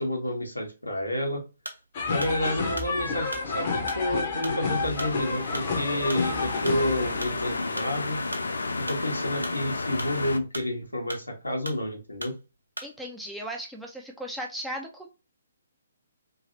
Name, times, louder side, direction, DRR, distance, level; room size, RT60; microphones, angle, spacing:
voice 1, 0.0-1.4 2.1-8.2 8.9-12.3, left 1 dB, 80° left, 1 dB, 1.2 m, -30 dB
sound 1, 1.6-1.9 2.2-7.4 7.8-9.0 9.3-10.8 11.1-11.8 12.2-12.4 12.8-13.0, right 1 dB, 85° right, 0.7 m, -39 dB
sound 2, 1.9-7.6, left 4 dB, 35° left, 0.8 m, -30 dB
sound 3, 4.7-10.4, left 3 dB, 65° left, 0.4 m, -32 dB
voice 2, 12.8-15.1, equal, ahead, -1 dB, 0.5 m, -36 dB
3.0 x 2.8 x 2.5 m, 0.29 s
figure-of-eight pair, 130°, 0 cm